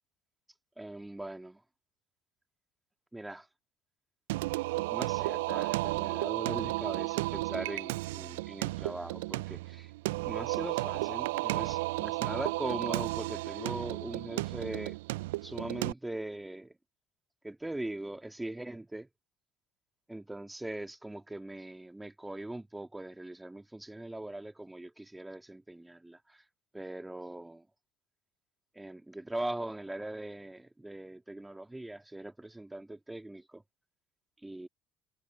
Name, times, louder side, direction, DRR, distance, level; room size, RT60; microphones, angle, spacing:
voice 1, 0.8-1.6 3.1-3.5 4.9-9.9 10.2-15.0 15.4-16.7 17.4-19.1 20.1-26.4 26.7-27.7 28.7-33.6 34.4-34.7, right 1 dB, 10° right, 3.0 m, -41 dB
Singing, 4.3-15.9, right 21 dB, 75° right, 0.5 m, -33 dB
figure-of-eight pair, 60°, 0 cm